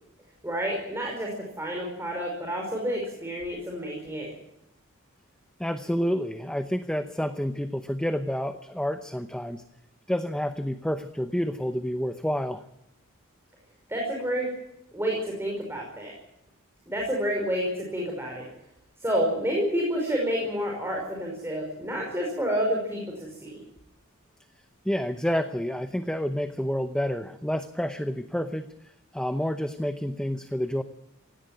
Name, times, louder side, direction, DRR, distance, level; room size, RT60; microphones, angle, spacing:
voice 1, 0.4-4.3 13.9-14.5 14.9-16.1 16.9-18.5 19.0-23.6, equal, 10° right, -1 dB, 5.3 m, -29 dB
voice 2, 5.6-9.6 10.1-12.6 24.8-28.7 29.1-30.8, equal, 5° left, 8 dB, 0.8 m, -29 dB
18.0 x 17.5 x 9.1 m, 0.82 s
head